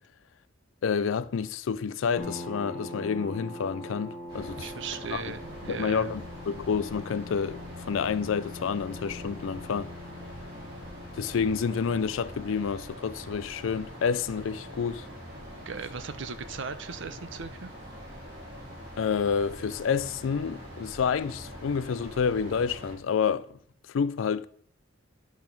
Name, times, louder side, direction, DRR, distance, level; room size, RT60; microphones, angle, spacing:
voice 1, 0.8-4.7 5.1-5.3 5.7-9.9 11.1-15.1 19.0-23.6 23.9-24.5, left 6 dB, 70° left, 0.4 m, -29 dB
sound 1, 2.2-15.4, left 1 dB, 5° left, 1.4 m, -44 dB
sound 2, 4.3-22.9, equal, 20° right, 3.9 m, -44 dB
voice 2, 4.6-6.2 15.7-17.7, right 5 dB, 65° right, 0.6 m, -38 dB
10.5 x 3.6 x 5.9 m
head